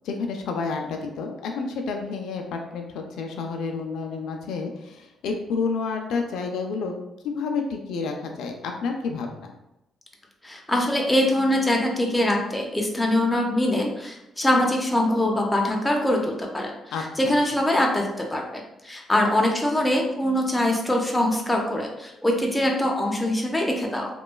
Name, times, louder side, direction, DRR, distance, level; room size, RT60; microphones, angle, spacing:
voice 1, 0.0-6.9 7.2-9.5 16.9-17.3, left 4 dB, 80° left, 3 dB, 0.3 m, -30 dB
voice 2, 10.4-16.7 17.2-24.1, left 1 dB, 10° left, 0 dB, 0.6 m, -23 dB
3.0 x 2.2 x 2.2 m, 0.92 s
cardioid pair, 90°, 0 cm